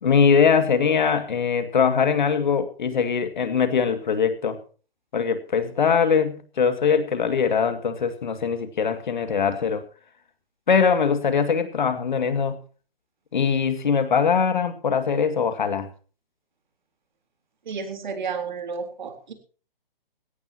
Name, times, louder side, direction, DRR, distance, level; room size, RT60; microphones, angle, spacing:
voice 1, 0.0-4.6 5.1-9.8 10.7-12.6 13.3-15.9, left 6 dB, 55° left, 10 dB, 2.3 m, -22 dB
voice 2, 17.7-19.3, right 5 dB, 55° right, 7 dB, 3.9 m, -32 dB
18.5 x 17.0 x 2.9 m, 0.38 s
figure-of-eight pair, 140°, 29 cm